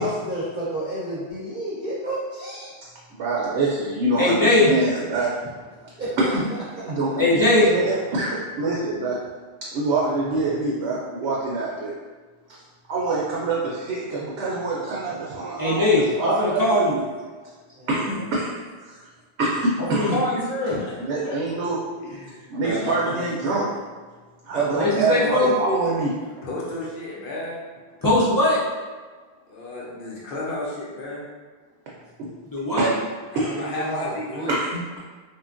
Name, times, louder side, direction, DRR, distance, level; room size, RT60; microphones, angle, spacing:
voice 1, 0.0-2.7 6.0-6.2 17.7-18.2 33.5-34.6, right 1 dB, 50° right, -10 dB, 0.8 m, -31 dB
voice 2, 3.1-5.3 6.3-6.4 6.8-9.2 9.7-11.9 12.9-15.8 16.2-16.6 17.9-18.4 19.4-20.2 21.1-21.8 22.5-23.7 24.4-26.1 32.2-32.3 32.8-33.0 33.3-33.5 34.5-35.0, right 3 dB, 80° right, -5 dB, 0.8 m, -25 dB
voice 3, 4.2-4.7 7.2-7.7 15.6-17.0 19.9-20.7 24.8-25.5 28.0-28.6 32.5-32.9, left 2 dB, 30° left, -9 dB, 0.3 m, -20 dB
voice 4, 20.6-21.0 21.2-21.4 22.0-23.6 24.5-25.4 26.4-27.6 29.5-31.3 33.3-34.5, left 2 dB, 55° left, -5 dB, 0.8 m, -33 dB
3.3 x 2.3 x 2.4 m, 1.4 s
omnidirectional pair, 1.1 m